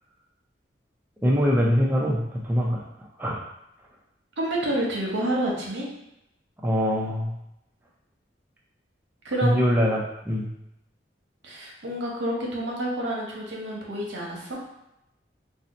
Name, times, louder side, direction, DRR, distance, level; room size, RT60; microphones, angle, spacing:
voice 1, 1.2-3.4 6.6-7.3 9.4-10.5, equal, 10° right, -2 dB, 0.4 m, -23 dB
voice 2, 4.4-5.9 9.2-9.6 11.4-14.6, right 1 dB, 80° right, -2 dB, 0.8 m, -28 dB
2.6 x 2.1 x 4.0 m, 0.85 s
head